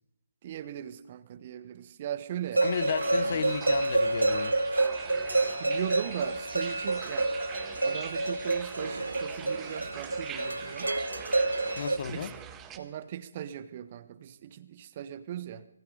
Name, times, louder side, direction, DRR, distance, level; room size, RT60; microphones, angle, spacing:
voice 1, 0.4-2.7 3.1-3.5 5.6-7.3 7.8-10.9 12.1-12.3 12.7-15.7, right 10 dB, 35° right, 1.2 m, -39 dB
voice 2, 2.6-4.5 11.8-12.3, left 7 dB, 40° left, 1.2 m, -33 dB
sound 1, 2.6-12.8, right 9 dB, 15° right, 1.6 m, -44 dB
sound 2, 2.6-12.0, right 2 dB, 75° right, 1.2 m, -28 dB
25.5 x 22.5 x 5.3 m
figure-of-eight pair, 140°, 0 cm